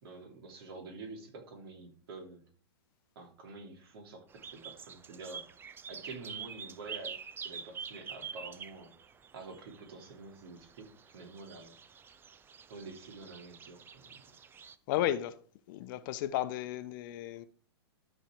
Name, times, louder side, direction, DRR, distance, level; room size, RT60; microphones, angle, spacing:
voice 1, 0.0-2.4 3.1-5.4 5.9-7.2 7.4-8.9 9.3-11.7 12.7-14.2, right 3 dB, 60° right, 3.0 m, -48 dB
sound 1, 4.3-14.8, right 7 dB, 15° right, 0.5 m, -47 dB
voice 2, 14.9-15.4 15.7-17.5, left 12 dB, 50° left, 0.9 m, -33 dB
13.0 x 4.5 x 4.6 m
hypercardioid pair, 125°, 14 cm